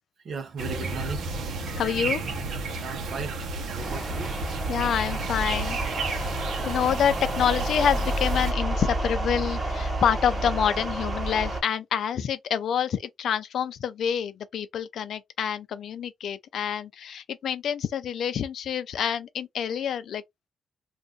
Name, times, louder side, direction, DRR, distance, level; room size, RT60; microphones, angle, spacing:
voice 1, 0.2-1.3 2.8-3.4 3.7-4.4, right 5 dB, 55° right, 0.9 m, -36 dB
sound 1, 0.6-8.5, right 3 dB, 80° right, 1.0 m, -32 dB
voice 2, 1.8-2.2 4.7-5.8 6.6-20.2, left 8 dB, 70° left, 0.5 m, -27 dB
sound 2, 3.8-11.6, right 1 dB, 25° right, 1.4 m, -30 dB
2.6 x 2.5 x 3.9 m
cardioid pair, 125°, 0 cm